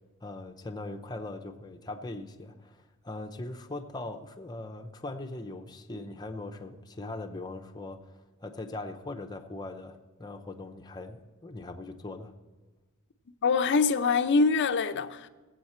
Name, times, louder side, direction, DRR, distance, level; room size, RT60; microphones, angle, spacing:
voice 1, 0.2-12.3, left 2 dB, 20° left, 0.7 m, -40 dB
voice 2, 13.4-15.3, left 4 dB, 55° left, 0.5 m, -24 dB
17.5 x 8.1 x 4.3 m
head